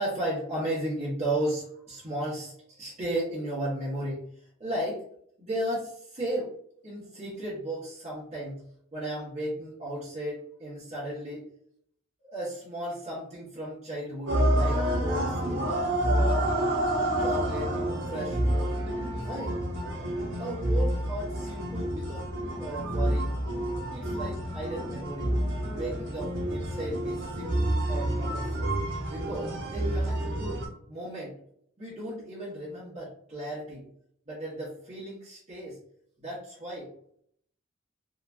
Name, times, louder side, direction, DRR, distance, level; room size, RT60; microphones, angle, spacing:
voice 1, 0.0-4.2 4.6-5.0 5.4-6.5 6.8-8.6 8.9-11.5 12.2-15.6 16.0-16.4 17.2-17.7 18.1-18.7 19.2-19.5 20.4-22.3 22.6-23.3 23.9-25.3 25.7-28.7 29.1-30.6 30.9-31.3 31.8-33.8 34.3-35.8 36.2-36.9, right 1 dB, 35° right, -10 dB, 1.1 m, -35 dB
sound 1, 14.3-30.7, right 1 dB, 65° right, 0.8 m, -28 dB
2.9 x 2.6 x 2.2 m, 0.67 s
head